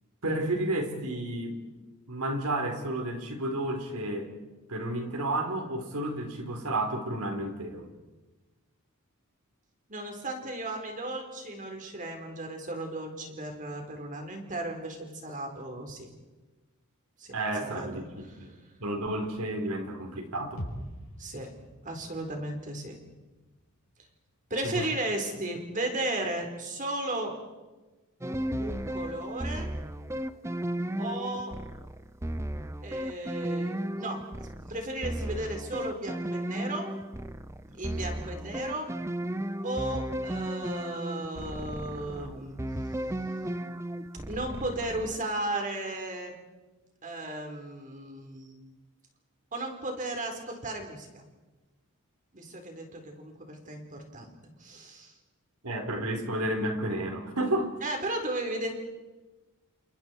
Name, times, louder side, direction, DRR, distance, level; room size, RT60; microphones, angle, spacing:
voice 1, 0.2-1.7 2.1-4.3 4.7-7.9 17.3-18.5 18.8-20.6 24.6-24.8 55.6-57.7, right 1 dB, 90° right, 4 dB, 4.2 m, -31 dB
voice 2, 9.9-16.1 17.2-17.3 17.6-18.4 21.2-21.5 21.8-22.9 24.5-27.3 28.6-29.7 31.0-31.5 32.8-36.9 37.8-38.9 39.6-42.6 44.3-46.4 47.0-48.6 49.5-51.2 52.3-55.1 57.8-58.8, right 1 dB, 35° right, 3 dB, 4.4 m, -35 dB
sound 1, 20.6-24.5 24.8-24.9, equal, 85° left, 5.7 m, -44 dB
sound 2, 28.2-45.2, right 1 dB, 10° right, 0.7 m, -35 dB
29.5 x 28.5 x 4.6 m, 1.2 s
head